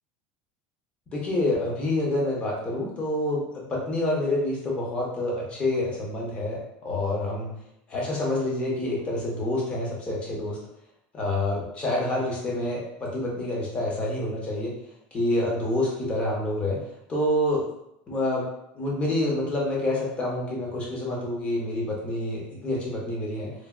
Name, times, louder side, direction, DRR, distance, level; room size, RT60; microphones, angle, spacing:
voice 1, 1.1-7.5 7.9-10.6 11.1-14.8 15.1-17.6 18.1-18.4 18.7-23.5, left 1 dB, 25° left, -3 dB, 0.8 m, -27 dB
3.2 x 2.2 x 2.4 m, 0.77 s
cardioid pair, 150°, 5 cm